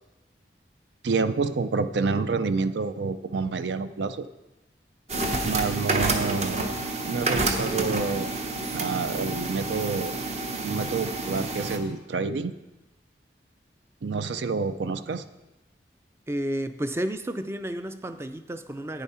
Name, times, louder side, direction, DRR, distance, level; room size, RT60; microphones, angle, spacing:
voice 1, 1.0-4.3 5.4-6.8 7.1-8.3 8.7-10.1 10.6-12.5 14.0-15.2, right 4 dB, 85° right, 12 dB, 0.5 m, -28 dB
sound 1, 5.1-11.8, right 2 dB, 40° right, 0.8 m, -29 dB
voice 2, 16.3-19.0, right 1 dB, 15° right, 10 dB, 0.4 m, -31 dB
10.5 x 9.2 x 4.3 m, 1.0 s
head